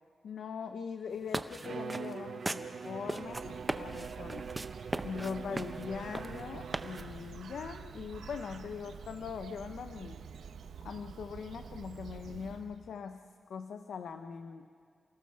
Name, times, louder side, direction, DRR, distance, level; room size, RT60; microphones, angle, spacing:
voice 1, 0.2-4.5 5.0-10.2 10.8-13.2 13.5-14.7, left 6 dB, 85° left, 8 dB, 0.7 m, -41 dB
sound 1, 1.1-7.3, right 2 dB, 15° right, 0.7 m, -39 dB
Bowed string instrument, 1.6-7.3, right 6 dB, 55° right, 0.5 m, -43 dB
Bird, 3.0-13.0, right 6 dB, 90° right, 0.8 m, -48 dB
28.5 x 17.0 x 6.7 m, 2.3 s
wide cardioid pair, 160°, 0 cm